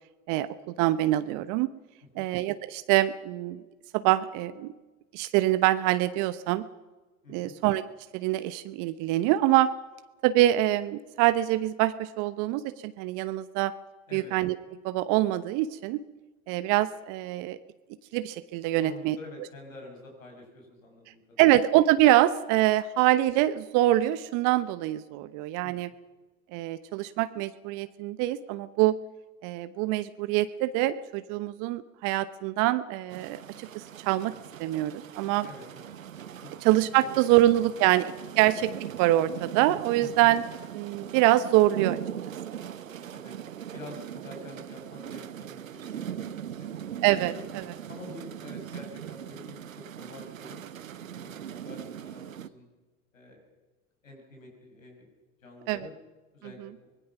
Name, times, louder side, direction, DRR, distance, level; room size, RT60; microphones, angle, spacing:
voice 1, 0.3-1.7 2.2-3.6 3.9-4.7 5.1-6.7 7.3-7.8 8.1-9.7 10.2-13.7 14.1-14.6 14.8-16.0 16.5-17.6 18.1-19.2 21.4-25.9 26.5-29.0 29.4-34.3 34.6-35.5 36.6-38.7 39.0-40.4 40.7-42.0 47.0-47.6 55.7-55.9, right 15 dB, 50° right, 13 dB, 1.0 m, -25 dB
voice 2, 7.2-7.6 14.1-14.3 18.8-21.6 25.6-25.8 35.4-35.9 36.4-36.5 37.0-37.2 37.8-37.9 38.3-38.4 40.0-40.3 43.1-43.3 43.7-46.9 47.3-47.4 47.9-50.6 51.1-52.7 53.1-53.4 54.0-55.1 55.4-55.9 56.3-56.9, left 2 dB, 85° left, 2 dB, 6.7 m, -47 dB
sound 1, 33.1-52.5, right 9 dB, 85° right, 1.0 m, -40 dB
24.5 x 20.5 x 5.9 m, 1.2 s
hypercardioid pair, 80°, 39 cm